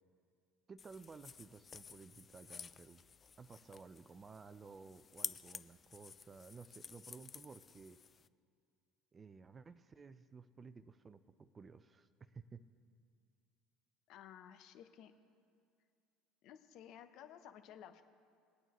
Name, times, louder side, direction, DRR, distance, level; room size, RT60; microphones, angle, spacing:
voice 1, 0.7-3.0 3.4-8.0 9.1-12.6, right 5 dB, 30° right, 13 dB, 0.5 m, -55 dB
sound 1, 0.8-8.3, left 6 dB, 35° left, 0.3 m, -51 dB
voice 2, 14.1-15.1 16.4-18.0, left 10 dB, 60° left, 9 dB, 0.8 m, -55 dB
19.0 x 9.0 x 3.0 m, 2.3 s
hypercardioid pair, 75°, 0 cm